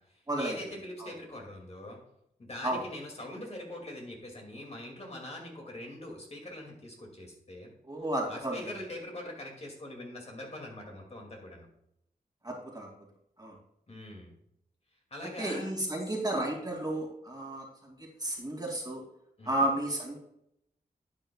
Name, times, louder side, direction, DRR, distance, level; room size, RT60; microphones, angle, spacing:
voice 1, 0.0-2.0 2.4-7.7 8.3-11.7 13.9-14.3 15.1-15.7 19.4-19.7, left 1 dB, 40° left, 0 dB, 2.4 m, -43 dB
voice 2, 7.8-8.6 12.4-12.9 13.4-13.5 15.4-17.6 18.2-19.0 19.4-20.2, right 1 dB, 25° right, -1 dB, 2.5 m, -32 dB
11.0 x 8.8 x 2.4 m, 0.77 s
wide cardioid pair, 95°, 16 cm